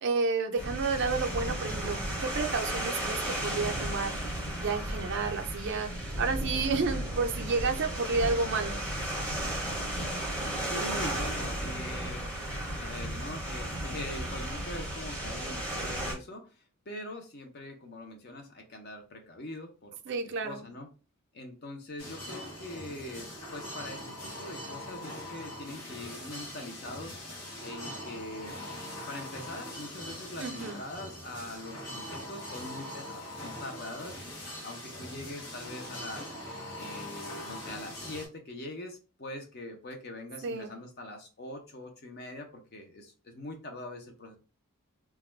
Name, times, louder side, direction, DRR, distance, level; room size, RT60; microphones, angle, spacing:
voice 1, 0.0-4.2 4.6-5.9 6.2-8.8 20.1-20.7 30.4-30.8 40.4-40.8, right 4 dB, 50° right, 0.4 m, -31 dB
sound 1, 0.6-16.1, right 1 dB, 5° left, 0.7 m, -34 dB
voice 2, 10.7-12.3 12.7-20.9 21.3-24.1 24.4-27.2 27.6-28.6 29.1-34.2 34.6-36.3 36.8-44.4, left 1 dB, 45° left, 0.6 m, -43 dB
sound 2, 22.0-38.3, left 1 dB, 80° left, 1.1 m, -42 dB
2.3 x 2.1 x 3.1 m
head